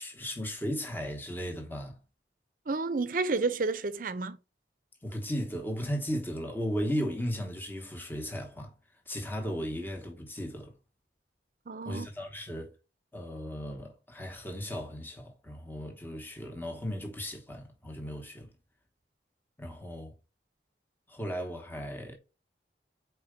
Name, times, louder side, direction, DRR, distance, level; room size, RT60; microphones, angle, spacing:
voice 1, 0.0-2.0 5.0-8.7 9.1-10.7 11.8-12.7 13.1-18.5 19.6-20.2 21.1-22.2, equal, 10° left, 1.1 m, -36 dB
voice 2, 2.7-4.4 11.7-12.1, right 3 dB, 50° right, 0.6 m, -30 dB
4.5 x 4.4 x 5.0 m
head